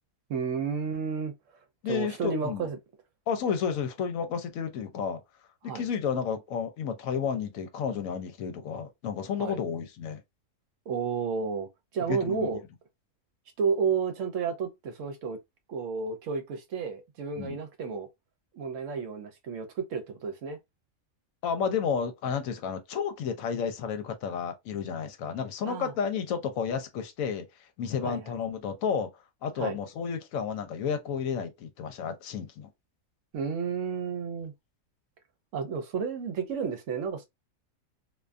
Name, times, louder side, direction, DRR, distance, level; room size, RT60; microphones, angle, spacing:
voice 1, 0.3-1.3 1.9-2.8 5.6-5.9 9.4-9.6 10.9-12.6 13.6-15.4 15.7-18.1 18.5-20.6 25.7-25.9 28.0-28.3 29.6-29.8 33.3-34.5 35.5-37.3, right 6 dB, 70° right, 0.9 m, -31 dB
voice 2, 1.8-2.7 3.3-5.2 5.6-10.2 12.1-12.5 17.4-17.6 21.4-27.5 27.8-29.1 29.4-32.7, left 6 dB, 80° left, 1.0 m, -31 dB
2.5 x 2.2 x 2.4 m
omnidirectional pair, 1.4 m